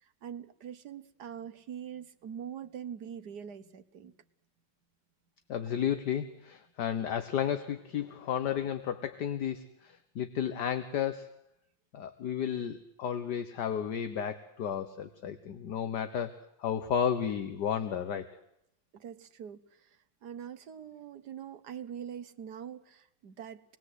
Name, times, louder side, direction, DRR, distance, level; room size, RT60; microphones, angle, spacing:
voice 1, 0.0-4.1 18.9-23.6, right 8 dB, 65° right, 10 dB, 1.7 m, -44 dB
voice 2, 5.5-11.4 11.9-16.3 16.6-18.3, left 8 dB, 65° left, 9 dB, 1.7 m, -33 dB
27.0 x 21.0 x 8.2 m, 0.80 s
omnidirectional pair, 2.0 m